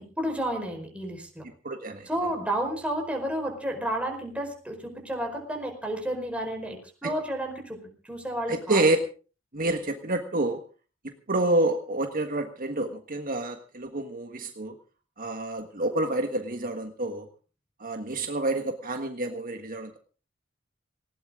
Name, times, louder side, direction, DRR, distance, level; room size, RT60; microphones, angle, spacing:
voice 1, 0.0-1.4 2.1-7.8 8.0-8.8, right 1 dB, 5° right, 2 dB, 4.7 m, -31 dB
voice 2, 1.6-2.1 7.0-7.1 8.5-9.0 9.5-10.6 11.0-14.7 15.2-17.3 17.8-20.0, right 2 dB, 45° right, 5 dB, 1.5 m, -28 dB
19.5 x 17.5 x 3.7 m, 0.37 s
head